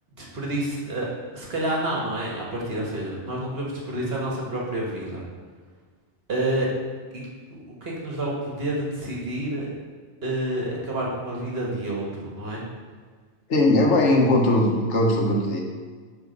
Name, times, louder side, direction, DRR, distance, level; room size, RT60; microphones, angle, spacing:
voice 1, 0.2-1.1 1.3-5.2 6.3-6.7 7.1-9.7 10.2-12.6, right 1 dB, 60° right, -3 dB, 1.6 m, -29 dB
voice 2, 13.5-15.6, left 1 dB, 85° left, 0 dB, 1.4 m, -19 dB
8.1 x 3.6 x 5.2 m, 1.5 s
omnidirectional pair, 1.2 m